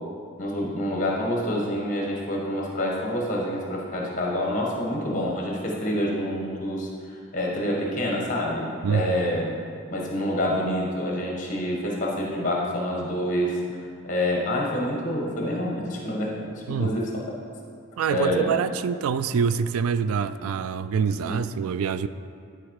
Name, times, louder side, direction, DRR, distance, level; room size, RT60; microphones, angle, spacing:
voice 1, 0.4-6.9 7.3-9.5 9.9-13.6 14.0-17.3 18.1-18.5 21.3-21.4, left 1 dB, 35° left, -2 dB, 1.5 m, -27 dB
voice 2, 8.8-9.3 16.7-17.0 18.0-22.1, right 6 dB, 85° right, 13 dB, 0.3 m, -26 dB
12.0 x 4.5 x 4.8 m, 2.4 s
head